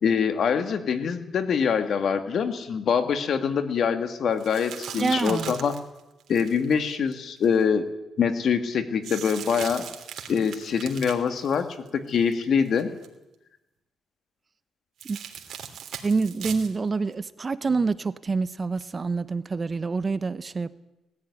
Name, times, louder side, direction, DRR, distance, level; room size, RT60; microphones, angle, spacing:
voice 1, 0.0-5.7 6.3-7.9 8.2-9.8 10.3-11.7 11.9-12.9, left 6 dB, 60° left, 2.3 m, -24 dB
sound 1, 4.4-7.6 9.0-12.3 12.6-13.1 15.0-16.7 17.1-17.2 18.8-18.9, right 8 dB, 70° right, 2.9 m, -40 dB
voice 2, 5.0-5.5 15.1-15.2 16.0-20.7, right 4 dB, 30° right, 0.9 m, -27 dB
19.0 x 14.5 x 10.0 m
cardioid pair, 95°, 0 cm